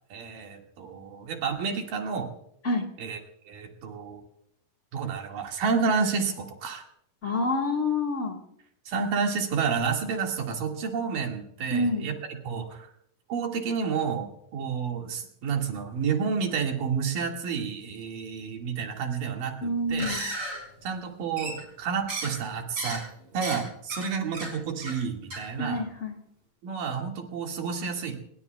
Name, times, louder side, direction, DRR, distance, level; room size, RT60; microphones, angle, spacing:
voice 1, 0.1-2.3 3.0-3.2 3.5-4.2 4.9-6.8 8.9-12.9 13.3-20.1 20.8-23.0 23.3-25.8 26.6-28.2, right 5 dB, 80° right, 2 dB, 3.7 m, -30 dB
voice 2, 7.2-8.4 11.7-12.0 19.6-20.2 25.6-26.1, left 2 dB, 35° left, 1 dB, 1.2 m, -27 dB
sound 1, 19.9-20.6 21.4-21.8 22.1-22.4 22.8-23.0 23.3-23.6 23.9-24.1 24.3-24.5 24.8-25.0 25.3-25.4, right 2 dB, 40° right, 6.4 m, -34 dB
27.0 x 21.0 x 2.3 m, 0.71 s
omnidirectional pair, 3.8 m